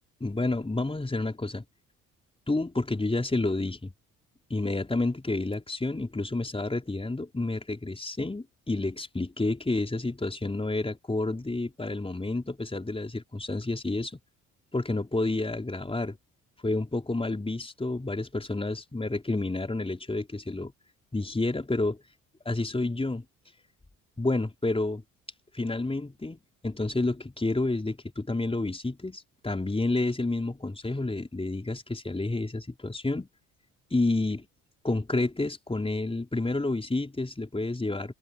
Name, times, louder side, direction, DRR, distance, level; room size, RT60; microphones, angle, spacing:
voice 1, 0.2-1.7 2.5-3.9 4.5-14.2 14.7-16.2 16.6-20.7 21.1-22.0 22.5-23.2 24.2-25.0 25.5-33.3 33.9-34.5 34.8-38.1, left 2 dB, 15° left, 4.1 m, -29 dB
open air
figure-of-eight pair, 50°, 42 cm